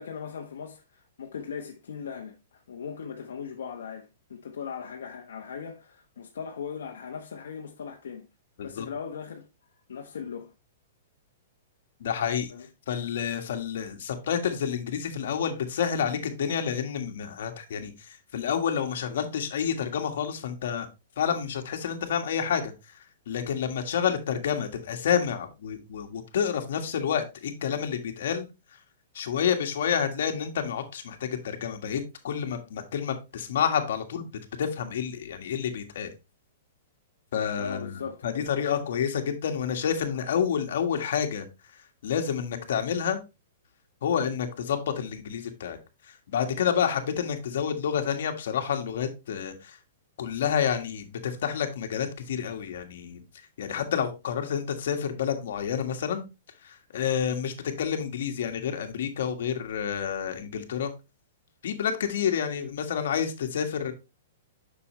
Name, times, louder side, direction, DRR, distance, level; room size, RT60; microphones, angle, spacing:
voice 1, 0.0-8.3 8.6-9.4 9.9-10.5 12.5-12.7 37.6-38.5, left 6 dB, 85° left, 1.0 m, -39 dB
voice 2, 12.0-12.5 12.9-20.9 21.2-22.7 23.3-28.5 29.1-34.3 34.6-36.1 37.3-41.5 42.0-43.2 44.0-45.8 46.1-49.8 50.2-53.2 53.6-56.2 56.6-60.9 61.6-63.9, left 8 dB, 70° left, 1.6 m, -29 dB
7.1 x 6.2 x 3.1 m
hypercardioid pair, 155°, 0 cm